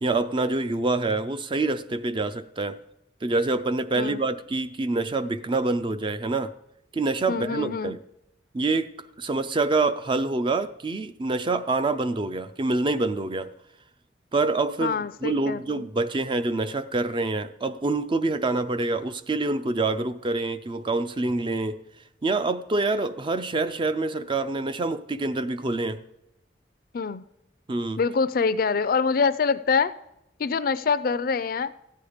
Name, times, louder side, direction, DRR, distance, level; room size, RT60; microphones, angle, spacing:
voice 1, 0.0-2.8 3.2-6.5 6.9-8.0 8.5-8.9 9.2-13.5 14.3-21.8 22.2-26.0 27.7-28.0, right 3 dB, 30° right, 12 dB, 0.4 m, -26 dB
voice 2, 7.3-8.0 14.8-15.9 26.9-27.2 28.0-29.9 30.4-31.7, left 5 dB, 55° left, 15 dB, 0.4 m, -25 dB
13.5 x 8.6 x 5.0 m, 0.84 s
head